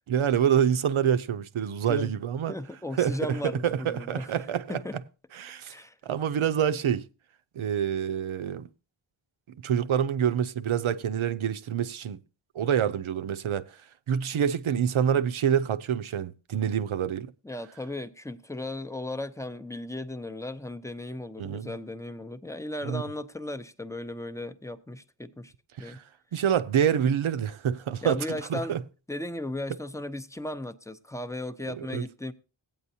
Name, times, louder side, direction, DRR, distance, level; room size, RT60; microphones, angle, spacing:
voice 1, 0.1-2.5 3.0-4.8 5.3-5.7 6.0-7.0 7.6-8.7 9.6-12.2 12.5-13.7 14.1-17.3 21.4-21.7 22.8-23.0 25.8-26.0 26.3-28.2 28.5-28.8 31.7-32.0, right 8 dB, 75° right, 0.7 m, -26 dB
voice 2, 2.5-4.3 4.7-5.0 5.7-6.0 17.4-25.5 25.8-26.0 28.0-28.7 29.1-32.3, left 1 dB, 5° left, 0.6 m, -36 dB
16.0 x 9.0 x 2.7 m
wide cardioid pair, 85°, 48 cm